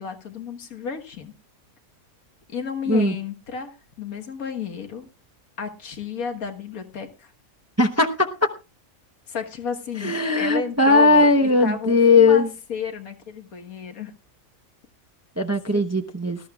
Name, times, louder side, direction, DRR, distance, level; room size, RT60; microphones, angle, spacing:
voice 1, 0.0-1.3 2.5-5.1 5.6-7.3 9.3-14.1 15.7-15.8, left 6 dB, 75° left, 4 dB, 1.8 m, -32 dB
voice 2, 7.8-8.5 10.0-12.5 15.4-16.4, left 3 dB, 15° right, 4 dB, 0.6 m, -18 dB
19.5 x 13.0 x 2.3 m, 0.32 s
omnidirectional pair, 1.5 m